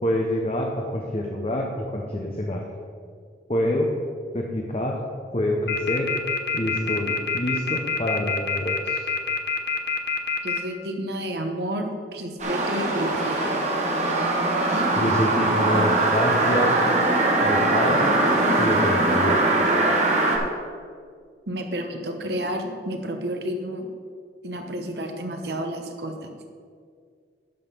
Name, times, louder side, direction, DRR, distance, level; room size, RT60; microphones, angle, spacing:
voice 1, 0.0-2.6 3.5-3.9 4.3-4.9 5.3-6.1 6.5-9.1 15.0-16.8 17.4-18.1 18.6-19.4, left 1 dB, 35° left, 0 dB, 0.8 m, -26 dB
sound 1, 5.7-10.6, left 5 dB, 65° left, 0.8 m, -25 dB
voice 2, 10.4-13.6 21.5-23.9 24.4-26.3, equal, 65° right, 4 dB, 1.0 m, -30 dB
sound 2, 12.4-20.4, right 2 dB, 40° right, 1.3 m, -21 dB
10.5 x 3.9 x 6.9 m, 2.1 s
head